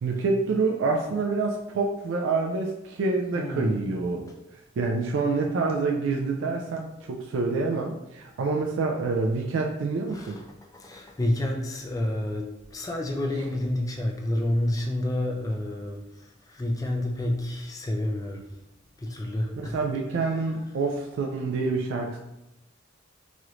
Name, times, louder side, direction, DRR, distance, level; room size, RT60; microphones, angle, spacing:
voice 1, 0.0-4.3 4.8-10.4 19.6-22.2, right 3 dB, 70° right, 1 dB, 0.3 m, -27 dB
voice 2, 3.4-3.9 10.1-10.4 10.7-18.5 19.0-19.8, left 1 dB, 20° left, 1 dB, 0.3 m, -29 dB
3.0 x 2.9 x 2.4 m, 0.92 s
head